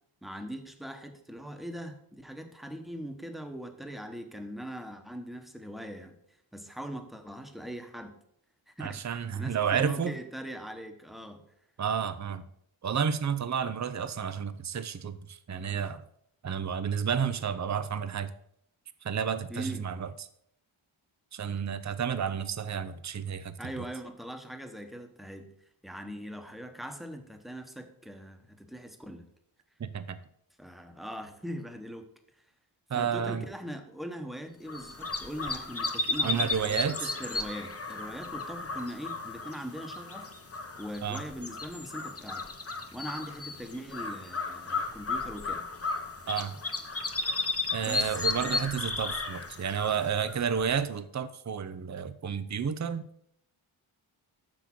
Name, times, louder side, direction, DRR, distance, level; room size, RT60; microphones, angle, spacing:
voice 1, 0.2-6.2 6.5-8.1 8.7-11.4 19.5-19.9 23.6-25.5 25.8-29.3 30.6-32.1 32.9-40.3 40.8-42.5 42.9-45.6 47.8-48.7, equal, ahead, 5 dB, 1.1 m, -41 dB
voice 2, 8.8-10.1 11.8-12.5 12.8-16.0 16.4-18.3 19.0-20.1 21.3-23.8 29.8-30.2 32.9-33.4 36.2-37.1 41.0-41.2 46.3-46.6 47.7-53.1, right 7 dB, 35° right, 13 dB, 0.5 m, -31 dB
sound 1, 34.7-50.7, left 3 dB, 30° left, 0.9 m, -34 dB
6.8 x 6.2 x 6.0 m, 0.70 s
wide cardioid pair, 105°, 50 cm